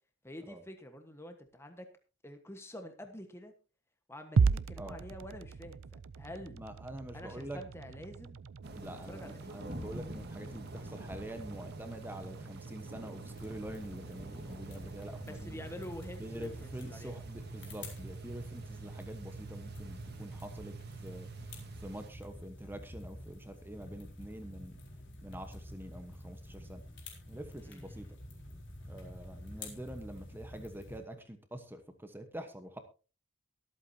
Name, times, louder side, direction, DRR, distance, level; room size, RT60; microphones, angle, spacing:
voice 1, 0.2-1.8 2.2-3.5 4.1-5.8 6.2-6.6 7.1-8.4 9.1-9.5 15.2-17.1 27.6-28.2, left 1 dB, 10° left, 6 dB, 1.3 m, -47 dB
sound 1, 4.4-22.6, right 5 dB, 65° right, 0.5 m, -39 dB
voice 2, 6.6-7.6 8.7-15.6 16.2-20.7 21.0-21.5 21.8-24.8 25.2-26.8 27.3-28.1 28.9-32.8, right 1 dB, 10° right, 7 dB, 1.1 m, -46 dB
sound 2, 8.6-22.1, right 1 dB, 45° right, 1.7 m, -49 dB
sound 3, 13.3-31.0, left 1 dB, 55° left, 4.2 m, -49 dB
23.5 x 8.4 x 2.8 m, 0.33 s
head